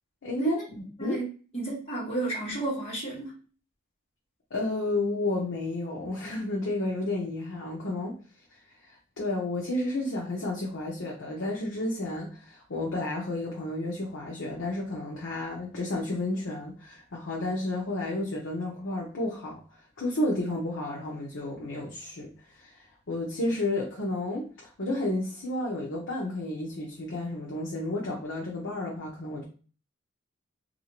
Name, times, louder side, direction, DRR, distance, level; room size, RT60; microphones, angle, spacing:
voice 1, 0.2-1.2 4.5-8.1 8.5-19.6 20.0-29.4, left 2 dB, 70° left, -3 dB, 0.7 m, -32 dB
voice 2, 1.5-3.3, right 2 dB, 30° left, -6 dB, 1.4 m, -31 dB
3.2 x 2.6 x 2.9 m, 0.39 s
head